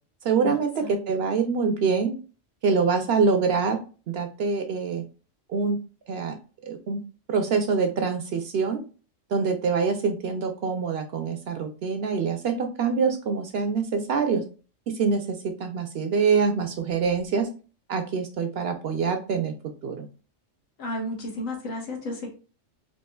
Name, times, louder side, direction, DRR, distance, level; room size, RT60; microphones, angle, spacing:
voice 1, 0.2-2.2 2.6-3.8 4.1-5.0 5.5-5.8 6.1-6.3 6.6-7.0 7.3-8.8 9.3-14.4 14.9-17.5 17.9-19.5 19.8-20.1, right 5 dB, 60° right, 6 dB, 0.7 m, -25 dB
voice 2, 20.8-22.3, left 1 dB, 90° left, 1 dB, 1.6 m, -32 dB
4.2 x 2.9 x 2.2 m, 0.36 s
omnidirectional pair, 1.3 m